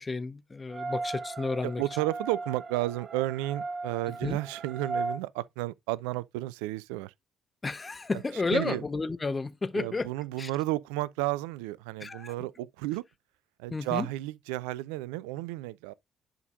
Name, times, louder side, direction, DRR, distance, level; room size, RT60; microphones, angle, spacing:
voice 1, 0.0-1.8 4.2-4.4 7.6-10.1 10.4-10.5 12.0-12.3 13.7-14.1, left 3 dB, 30° left, 0.8 m, -32 dB
sound 1, 0.7-5.2, right 3 dB, 40° right, 0.8 m, -37 dB
voice 2, 1.6-7.1 8.1-8.8 9.7-13.0 13.6-15.9, right 17 dB, 70° right, 0.3 m, -32 dB
10.5 x 5.1 x 2.5 m
figure-of-eight pair, 45°, 0 cm